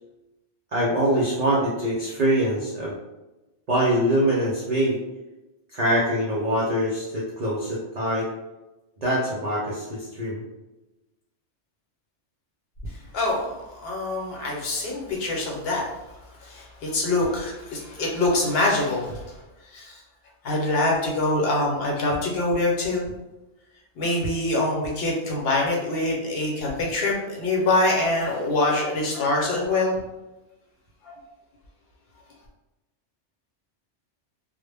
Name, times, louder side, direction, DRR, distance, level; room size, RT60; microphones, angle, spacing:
voice 1, 0.7-2.9 3.7-5.0 5.7-8.3 9.0-10.4, right 1 dB, 55° right, -5 dB, 0.4 m, -24 dB
voice 2, 12.8-16.0 16.4-19.4 19.6-20.0 20.4-23.0 23.9-30.0 31.0-31.1, left 2 dB, 60° left, -2 dB, 0.9 m, -25 dB
2.1 x 2.0 x 3.3 m, 1.0 s
omnidirectional pair, 1.2 m